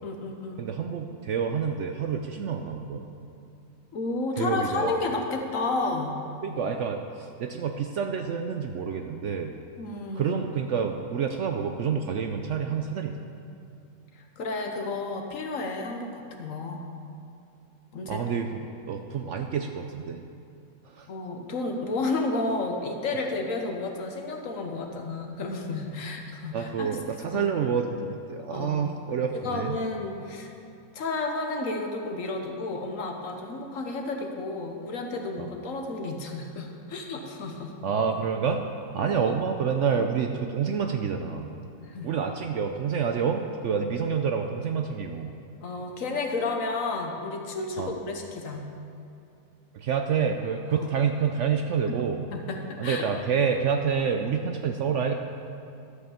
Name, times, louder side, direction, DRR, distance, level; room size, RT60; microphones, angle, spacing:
voice 1, 0.0-0.6 3.9-6.1 9.8-10.4 14.1-16.8 17.9-18.2 21.1-27.4 28.5-28.8 29.3-30.5 30.9-37.7 39.0-39.3 41.8-42.1 45.6-48.6 50.7-50.9 52.3-53.1, left 3 dB, 60° left, 3 dB, 1.3 m, -32 dB
voice 2, 0.6-3.1 4.4-5.0 6.4-9.6 10.2-13.1 18.1-18.5 18.9-20.2 20.9-21.1 26.5-29.8 35.4-35.5 37.8-38.6 38.9-41.5 42.0-45.3 47.8-47.9 49.7-52.2 52.8-55.1, right 6 dB, 65° right, 5 dB, 0.8 m, -28 dB
11.5 x 5.5 x 7.1 m, 2.6 s
omnidirectional pair, 1.6 m